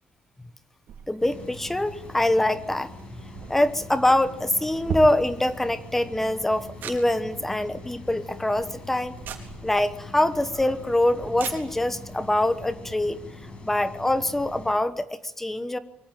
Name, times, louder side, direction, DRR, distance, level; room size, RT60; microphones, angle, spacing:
sound 1, 0.9-12.2, right 6 dB, 60° right, 4.2 m, -41 dB
voice 1, 1.1-2.9 3.5-9.1 9.6-13.2 13.6-15.8, left 1 dB, 10° left, 13 dB, 1.1 m, -24 dB
sound 2, 1.2-14.7, left 2 dB, 25° left, 6.5 m, -43 dB
26.0 x 23.5 x 9.1 m, 0.74 s
cardioid pair, 175°, 4 cm